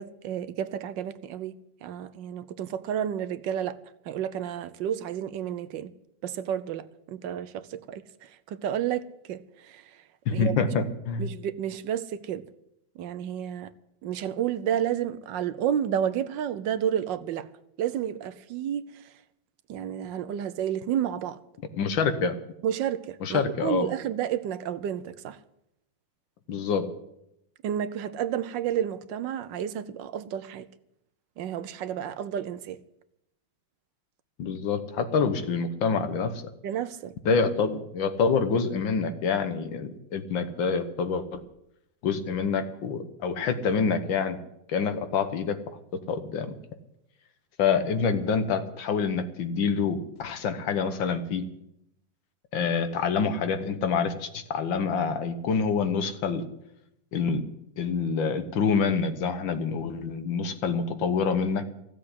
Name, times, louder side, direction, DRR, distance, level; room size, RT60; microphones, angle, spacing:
voice 1, 0.0-3.8 4.0-5.9 6.2-10.6 11.2-12.5 12.9-13.7 14.0-17.5 17.8-19.2 19.7-21.4 22.6-25.4 27.6-30.7 31.4-32.8 36.6-37.1, right 9 dB, 80° right, 1.4 m, -31 dB
voice 2, 10.3-11.3 21.8-22.4 23.2-23.9 26.5-26.9 34.4-36.4 37.3-41.4 42.0-44.4 44.7-45.6 46.1-46.5 47.6-51.5 52.5-56.4 57.1-57.4 57.8-61.6, left 5 dB, 90° left, 1.9 m, -26 dB
15.5 x 7.5 x 9.7 m
omnidirectional pair, 2.0 m